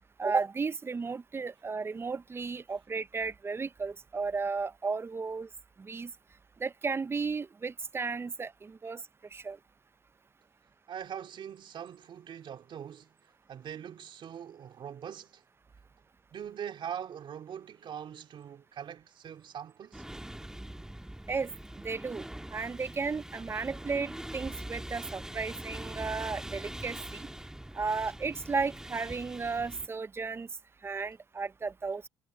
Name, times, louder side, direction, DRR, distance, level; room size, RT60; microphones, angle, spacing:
voice 1, 0.2-5.5 5.8-6.1 6.6-9.0 9.3-9.6 21.3-21.5 21.8-22.3 22.5-27.3 27.7-30.5 30.8-32.1, right 4 dB, 25° right, 0.5 m, -34 dB
voice 2, 10.9-13.1 13.5-15.4 16.3-20.0, right 9 dB, 55° right, 3.2 m, -42 dB
sound 1, 19.9-29.9, right 1 dB, 5° right, 1.7 m, -43 dB
cardioid pair, 90°, 10 cm